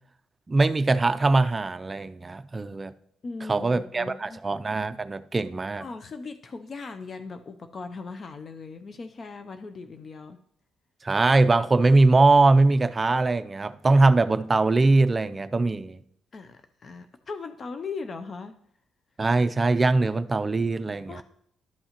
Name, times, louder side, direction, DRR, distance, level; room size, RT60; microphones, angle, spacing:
voice 1, 0.5-2.9 3.5-5.8 11.0-16.0 19.2-21.2, right 3 dB, 25° right, 11 dB, 0.4 m, -21 dB
voice 2, 3.2-4.4 5.8-10.4 16.3-18.6 21.1-21.2, left 4 dB, 45° left, 8 dB, 0.4 m, -38 dB
11.5 x 5.5 x 2.9 m, 0.70 s
cardioid pair, 90°, 0 cm